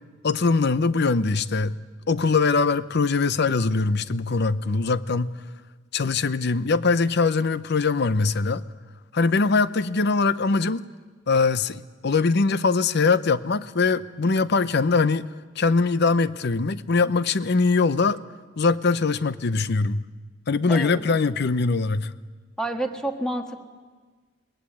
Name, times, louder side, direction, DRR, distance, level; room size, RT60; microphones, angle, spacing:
voice 1, 0.2-1.8 2.1-5.3 5.9-8.6 9.1-10.8 11.3-15.3 15.6-18.2 18.6-20.0 20.5-22.1, left 4 dB, 60° left, 0.7 m, -22 dB
voice 2, 20.7-21.2 22.6-23.6, right 1 dB, 5° left, 1.5 m, -29 dB
22.0 x 19.5 x 8.5 m
head